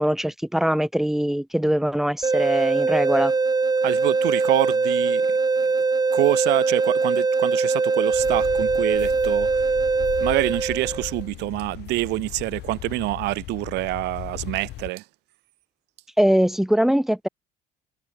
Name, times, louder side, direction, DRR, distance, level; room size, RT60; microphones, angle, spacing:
voice 1, 0.0-3.3 16.2-17.3, equal, ahead, 2.5 m, -22 dB
sound 1, 2.2-11.2, right 4 dB, 25° right, 4.2 m, -22 dB
voice 2, 3.8-5.4 6.1-9.6 10.2-15.0, right 20 dB, 90° right, 3.0 m, -26 dB
sound 2, 8.1-14.9, left 17 dB, 80° left, 5.7 m, -37 dB
cardioid pair, 110°, 17 cm